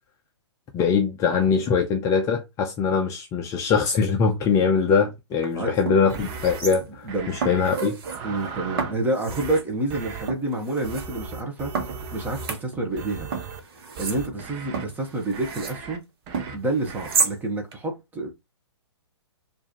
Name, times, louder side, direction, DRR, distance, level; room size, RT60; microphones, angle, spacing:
voice 1, 0.7-7.9, left 5 dB, 20° left, 0.6 m, -22 dB
sound 1, 5.3-5.5 5.9-7.1 7.4-8.2 8.8-9.7 10.3-11.1 11.7-13.0 13.3-15.8 16.3-17.4 17.7-17.8, right 5 dB, 55° right, 1.2 m, -31 dB
sound 2, 6.1-6.6 7.1-7.7 8.0-9.0 9.3-9.6 9.9-10.3 10.8-12.5 13.0-13.6 14.0-14.9 15.3-16.0 16.3-16.6 16.9-17.2, right 5 dB, 30° right, 0.8 m, -37 dB
voice 2, 7.0-7.5 8.2-11.7 12.1-13.3 14.0-16.0 16.5-18.3, right 2 dB, 10° right, 1.0 m, -28 dB
4.6 x 2.7 x 2.9 m
figure-of-eight pair, 125°, 15 cm